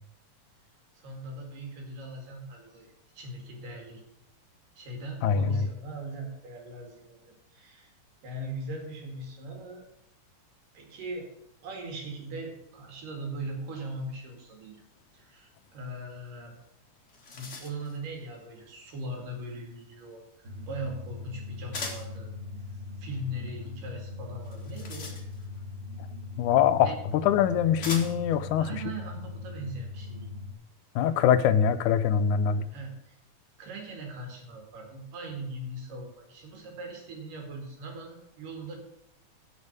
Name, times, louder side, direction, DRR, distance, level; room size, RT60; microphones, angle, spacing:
voice 1, 0.9-4.0 4.8-7.2 7.5-7.9 8.2-9.9 10.7-11.3 11.6-14.8 15.1-16.6 17.3-22.3 23.0-25.1 26.8-27.0 28.6-30.3 32.6-33.2 33.6-38.8, right 1 dB, 85° right, 3.8 m, -40 dB
voice 2, 5.2-5.6 26.4-28.7 31.0-32.7, left 8 dB, 80° left, 2.0 m, -23 dB
sound 1, 16.6-16.7 17.0-18.0 21.7-22.2 24.4-25.6 26.7-26.8 27.8-28.4, left 3 dB, 50° left, 0.8 m, -40 dB
sound 2, 20.4-30.5, left 3 dB, 60° right, 0.6 m, -40 dB
7.3 x 7.2 x 8.2 m
omnidirectional pair, 3.7 m